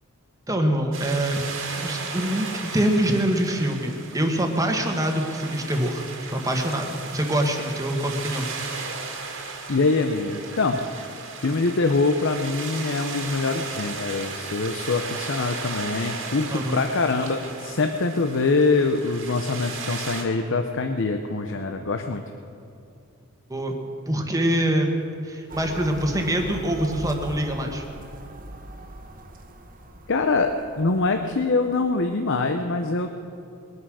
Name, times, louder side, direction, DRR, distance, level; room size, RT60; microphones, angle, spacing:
voice 1, 0.5-1.4 1.8-6.0 6.3-8.5 16.5-16.8 23.5-23.7 24.1-24.9 25.2-27.8, right 1 dB, 15° right, 3 dB, 1.4 m, -24 dB
sound 1, 0.9-20.2, right 4 dB, 65° right, 2.1 m, -36 dB
voice 2, 9.7-10.8 11.4-22.2 30.1-33.2, left 3 dB, 60° left, 6 dB, 0.7 m, -24 dB
sound 2, 25.5-32.0, right 1 dB, 40° right, 1.2 m, -41 dB
21.0 x 9.5 x 6.3 m, 2.5 s
head